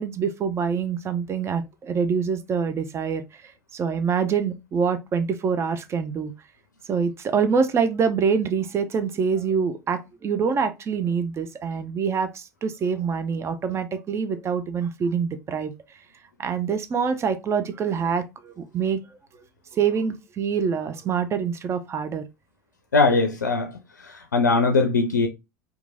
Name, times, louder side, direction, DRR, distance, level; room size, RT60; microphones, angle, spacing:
voice 1, 0.0-6.3 6.9-15.7 16.4-19.0 19.7-22.2, right 6 dB, 30° right, 0.4 m, -25 dB
voice 2, 22.9-23.7 24.3-25.3, left 3 dB, 85° left, 0.4 m, -20 dB
3.0 x 2.3 x 2.4 m
figure-of-eight pair, 75°, 9 cm